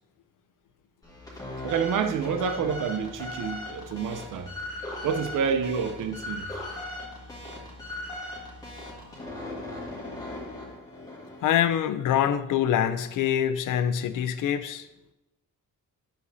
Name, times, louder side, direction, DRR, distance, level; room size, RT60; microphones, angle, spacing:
sound 1, 1.0-11.6, left 2 dB, 10° left, 1.5 m, -38 dB
voice 1, 1.6-4.5 5.0-6.5, right 6 dB, 75° right, 0.7 m, -28 dB
voice 2, 6.5-6.9 11.4-14.9, left 9 dB, 75° left, 0.6 m, -25 dB
9.7 x 6.4 x 2.7 m
wide cardioid pair, 170°, 32 cm